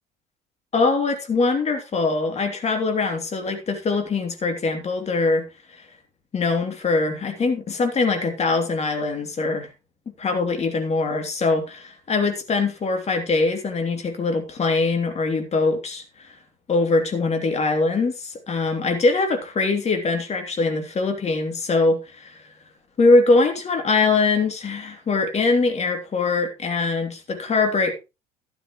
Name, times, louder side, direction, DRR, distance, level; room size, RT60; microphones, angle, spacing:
voice 1, 0.7-5.5 6.3-9.7 10.2-16.3 16.7-22.3 23.0-27.9, left 3 dB, 35° left, 5 dB, 2.9 m, -22 dB
12.5 x 10.0 x 3.1 m, 0.27 s
figure-of-eight pair, 60°, 20 cm